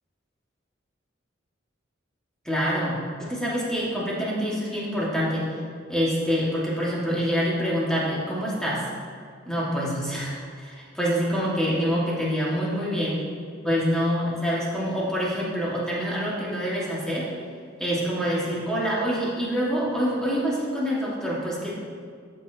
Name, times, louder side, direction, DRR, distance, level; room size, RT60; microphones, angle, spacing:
voice 1, 2.4-5.4 5.9-8.8 9.4-13.2 13.6-17.3 17.8-21.8, equal, 5° left, -7 dB, 1.6 m, -26 dB
13.0 x 6.0 x 2.7 m, 2.1 s
head